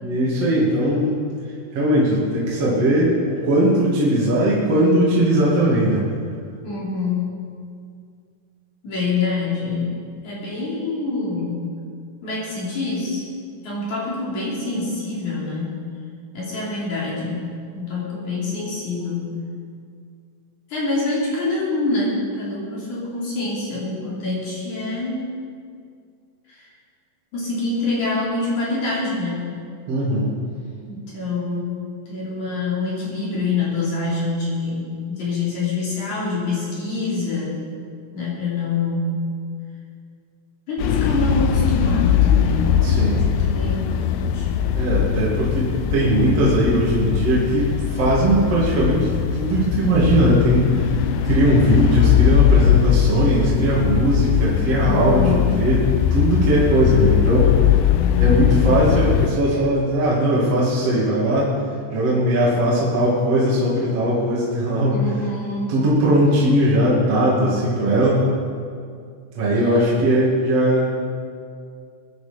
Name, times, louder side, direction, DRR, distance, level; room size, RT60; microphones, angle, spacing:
voice 1, 0.0-1.2 1.7-6.0 29.9-30.3 42.8-43.2 44.7-50.9 51.2-57.5 58.2-61.5 61.9-65.0 65.7-68.2 69.3-70.9, right 1 dB, 40° right, -6 dB, 2.8 m, -19 dB
voice 2, 6.6-7.3 8.8-10.0 10.2-11.7 12.2-13.2 13.6-15.8 16.3-19.4 20.7-25.3 26.5-26.7 27.3-29.5 30.8-37.7 38.1-39.2 40.7-42.7 43.4-44.5 54.8-55.6 64.9-65.8 69.5-69.9, left 3 dB, 45° left, -6 dB, 4.2 m, -26 dB
sound 1, 40.8-59.3, left 9 dB, 80° left, 2.4 m, -20 dB
22.5 x 10.0 x 5.3 m, 2.2 s
omnidirectional pair, 5.4 m